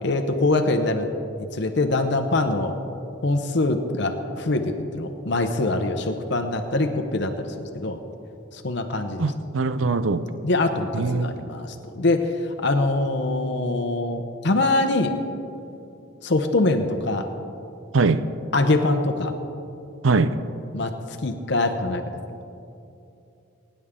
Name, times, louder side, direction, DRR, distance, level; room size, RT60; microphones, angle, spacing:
voice 1, 0.0-1.1 1.4-2.7 3.2-8.0 8.5-9.3 10.4-12.3 12.6-15.1 16.2-17.3 18.5-19.3 20.7-20.9 21.2-22.0, left 2 dB, 60° left, 5 dB, 0.8 m, -23 dB
voice 2, 9.2-10.2 10.9-11.3 17.9-18.2 20.0-20.3, right 4 dB, 80° right, 13 dB, 0.6 m, -21 dB
23.0 x 10.0 x 3.7 m, 2.7 s
head